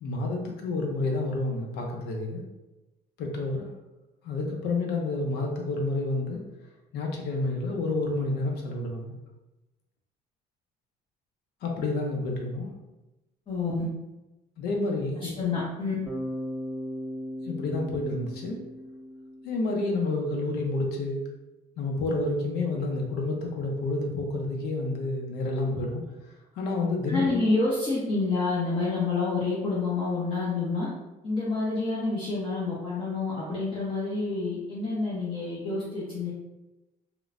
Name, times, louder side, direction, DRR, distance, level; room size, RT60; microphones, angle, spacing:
voice 1, 0.0-2.4 3.2-3.7 4.2-6.4 6.9-9.1 11.6-12.7 14.6-15.3 17.4-18.6 19.4-21.2 21.8-26.0 26.6-27.4, left 2 dB, 75° left, 1 dB, 0.6 m, -29 dB
voice 2, 13.5-13.8 15.2-15.9 27.1-30.9 31.2-36.3, left 3 dB, 30° left, -8 dB, 0.7 m, -28 dB
Bass guitar, 16.1-20.1, equal, 15° right, 0.5 m, -37 dB
3.0 x 2.1 x 2.4 m, 1.0 s
cardioid pair, 110°, 17 cm